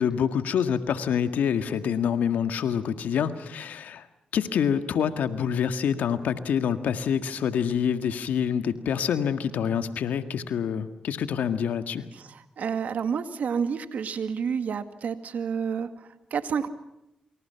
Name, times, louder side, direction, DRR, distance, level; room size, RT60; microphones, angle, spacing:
voice 1, 0.0-4.1 4.3-12.0, left 8 dB, 85° left, 10 dB, 1.8 m, -26 dB
voice 2, 12.6-15.9 16.3-16.7, right 6 dB, 75° right, 10 dB, 2.0 m, -29 dB
28.0 x 26.0 x 5.8 m, 0.85 s
cardioid pair, 55°, 3 cm